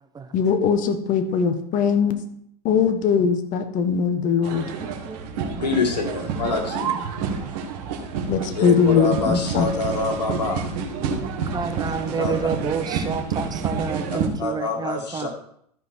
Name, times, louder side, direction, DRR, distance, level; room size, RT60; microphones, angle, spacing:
voice 1, 0.3-2.2 2.6-4.7 8.3-9.7, left 6 dB, 40° left, 8 dB, 1.3 m, -21 dB
sound 1, 4.4-14.3, right 6 dB, 55° right, 2.0 m, -29 dB
voice 2, 4.8-5.2 5.5-5.6 8.2-8.3 10.1-10.2 10.9-15.3, right 6 dB, 20° right, 8 dB, 0.9 m, -30 dB
voice 3, 5.6-7.0 8.6-10.7 12.2-12.3 14.1-15.3, left 3 dB, 80° left, 2 dB, 2.3 m, -26 dB
13.5 x 5.7 x 4.6 m, 0.68 s
hypercardioid pair, 95°, 21 cm